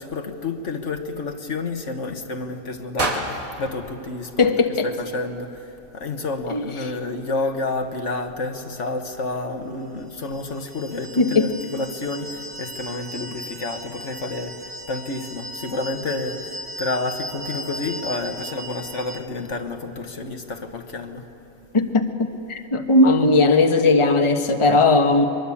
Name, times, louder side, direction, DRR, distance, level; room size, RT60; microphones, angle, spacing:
voice 1, 0.0-21.3, left 3 dB, 60° left, 6 dB, 1.6 m, -30 dB
sound 1, 3.0-5.1, right 2 dB, 85° right, 2.9 m, -30 dB
voice 2, 4.4-4.9 6.5-6.9 11.2-11.6 21.7-22.1 22.5-25.2, left 3 dB, 25° left, 5 dB, 1.1 m, -18 dB
sound 2, 10.2-19.2, right 1 dB, 55° right, 1.2 m, -37 dB
23.0 x 22.5 x 8.5 m, 2.9 s
omnidirectional pair, 1.4 m